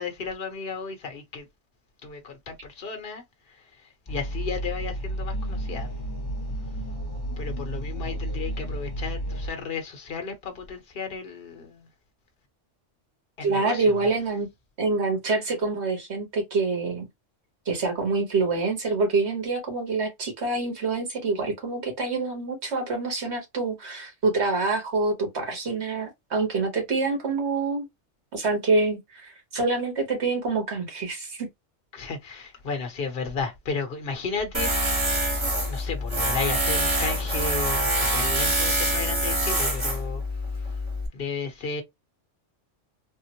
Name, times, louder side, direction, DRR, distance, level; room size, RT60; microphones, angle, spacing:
voice 1, 0.0-1.5 2.0-5.9 7.4-11.9 13.4-14.1 31.9-35.3 35.7-40.8 41.1-41.8, left 5 dB, 55° left, 1.1 m, -34 dB
sound 1, 4.1-9.5, right 1 dB, 20° left, 0.9 m, -32 dB
voice 2, 13.4-14.5 14.8-17.1 17.6-27.9 28.3-31.5, right 3 dB, 60° right, 1.6 m, -26 dB
Tools, 34.5-41.1, right 1 dB, 25° right, 1.0 m, -25 dB
3.6 x 2.0 x 2.8 m
omnidirectional pair, 1.3 m